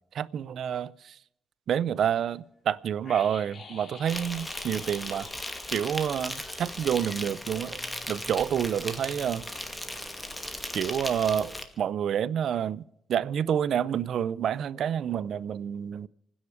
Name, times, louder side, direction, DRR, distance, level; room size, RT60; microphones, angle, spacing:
voice 1, 0.1-1.1 1.7-5.3 5.7-7.8 8.1-9.5 10.7-12.8 13.1-16.1, right 9 dB, 75° right, 0.5 m, -28 dB
sound 1, 3.0-7.9 8.1-8.2, left 4 dB, 50° left, 3.4 m, -47 dB
Insect, 4.1-11.6, left 1 dB, 10° left, 2.1 m, -37 dB
27.0 x 10.0 x 4.9 m
cardioid pair, 85°, 0 cm